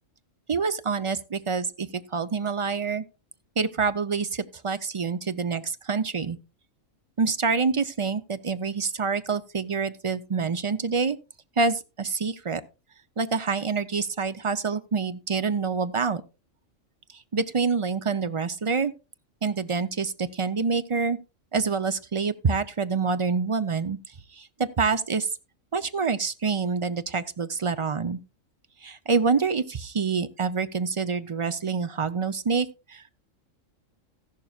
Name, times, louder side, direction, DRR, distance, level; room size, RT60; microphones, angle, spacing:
voice 1, 0.5-3.0 3.6-6.4 7.2-11.2 11.6-12.6 13.2-16.2 17.3-18.9 19.4-21.2 21.5-24.0 24.3-25.3 25.7-28.2 28.8-33.1, right 5 dB, 40° right, 0.4 m, -26 dB
14.0 x 11.5 x 2.4 m
omnidirectional pair, 1.4 m